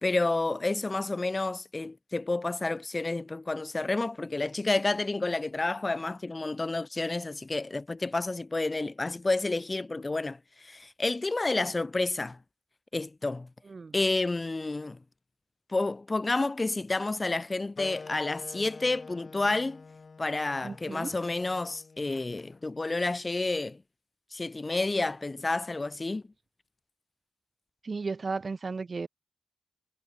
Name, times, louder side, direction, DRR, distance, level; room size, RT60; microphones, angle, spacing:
voice 1, 0.0-12.4 12.9-13.5 13.9-15.0 15.7-19.8 20.2-23.8 24.3-26.2, left 2 dB, 30° left, 3.1 m, -30 dB
Wind instrument woodwind instrument, 17.8-22.9, left 4 dB, 45° left, 2.4 m, -47 dB
voice 2, 20.6-21.1 27.8-29.1, right 4 dB, 45° right, 1.3 m, -34 dB
supercardioid pair, 40°, 0 cm